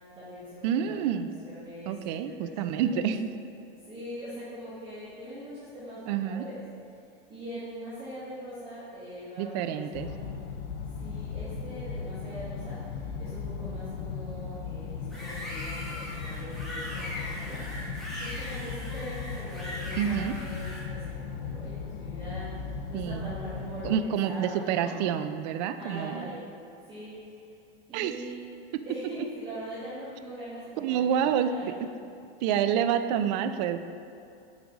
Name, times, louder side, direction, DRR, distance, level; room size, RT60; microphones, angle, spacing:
voice 1, 0.0-1.1 1.4-3.0 3.9-6.5 7.3-10.2 11.0-17.6 18.2-24.9 25.8-26.5 26.8-27.4 27.9-28.4 28.8-31.7, equal, 20° right, -12 dB, 1.7 m, -42 dB
voice 2, 0.6-1.3 1.9-3.3 6.1-6.4 9.4-10.1 20.0-20.3 22.9-23.3 23.8-26.3 27.9-28.2 30.8-31.5 32.4-33.8, right 9 dB, 50° right, 10 dB, 0.4 m, -28 dB
sound 1, 9.9-23.9, left 5 dB, 60° left, 0.6 m, -37 dB
sound 2, 15.1-20.8, left 1 dB, ahead, 1.4 m, -40 dB
8.0 x 5.0 x 3.9 m, 2.6 s
supercardioid pair, 160°, 29 cm